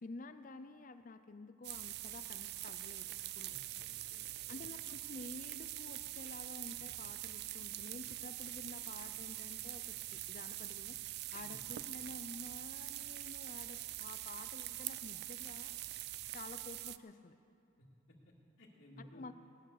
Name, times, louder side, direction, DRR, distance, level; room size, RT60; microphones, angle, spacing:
voice 1, 0.0-3.6 4.5-11.0 11.3-15.8 16.3-17.3 19.0-19.3, left 3 dB, 40° left, 10 dB, 0.5 m, -51 dB
sound 1, 1.6-17.0, right 15 dB, 50° right, 0.3 m, -44 dB
voice 2, 3.4-4.8 11.4-11.7 17.8-19.3, equal, 65° left, -7 dB, 2.0 m, -59 dB
18.0 x 11.0 x 6.6 m, 2.5 s
head